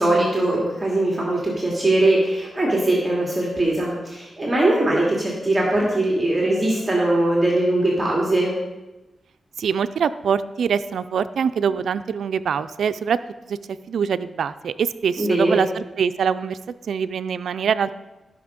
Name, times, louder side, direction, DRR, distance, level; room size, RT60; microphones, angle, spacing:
voice 1, 0.0-8.6 15.2-15.6, right 1 dB, 20° right, -3 dB, 2.3 m, -21 dB
voice 2, 9.6-13.2 13.5-16.6 16.9-17.9, right 7 dB, 80° right, 13 dB, 0.4 m, -24 dB
15.5 x 6.1 x 5.2 m, 1.1 s
cardioid pair, 90°, 0 cm